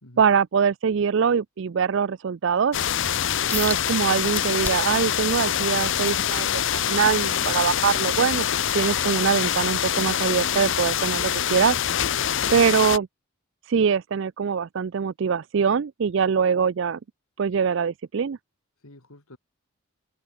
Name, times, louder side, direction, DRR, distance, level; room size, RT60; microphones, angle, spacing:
voice 1, 0.2-2.8 3.5-8.5 8.7-11.8 12.5-13.1 13.6-17.0 17.4-18.4, right 6 dB, 55° right, 0.4 m, -23 dB
sound 1, 2.7-13.0, left 9 dB, 60° left, 0.7 m, -25 dB
sound 2, 3.5-3.8 4.3-5.0 5.5-8.1 8.6-8.8 9.4-9.5, left 2 dB, 5° left, 1.0 m, -36 dB
voice 2, 18.8-19.4, left 1 dB, 80° left, 3.7 m, -47 dB
open air
head